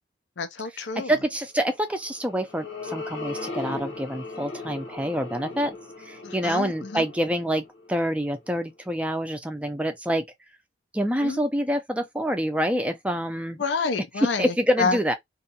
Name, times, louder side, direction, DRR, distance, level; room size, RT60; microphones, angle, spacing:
voice 1, 0.4-1.1 6.2-7.0 11.2-11.4 13.6-15.1, left 4 dB, 65° left, 0.5 m, -29 dB
voice 2, 0.9-5.7 6.0-10.2 10.9-13.6 14.4-15.1, equal, 5° right, 0.5 m, -27 dB
sound 1, 1.9-8.5, left 3 dB, 80° left, 1.0 m, -38 dB
2.6 x 2.4 x 2.7 m
head